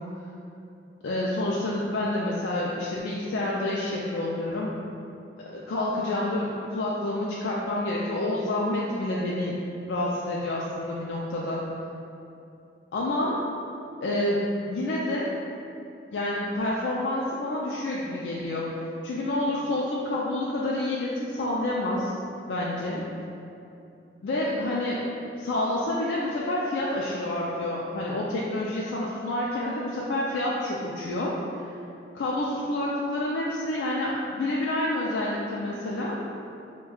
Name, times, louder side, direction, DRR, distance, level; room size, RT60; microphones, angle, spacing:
voice 1, 1.0-4.7 5.5-9.5 9.9-11.6 12.9-13.4 14.0-15.3 16.1-18.7 19.0-22.1 22.5-23.1 24.2-25.0 25.4-31.4 32.1-36.2, left 1 dB, 90° left, -5 dB, 0.4 m, -28 dB
5.7 x 2.2 x 2.3 m, 2.8 s
head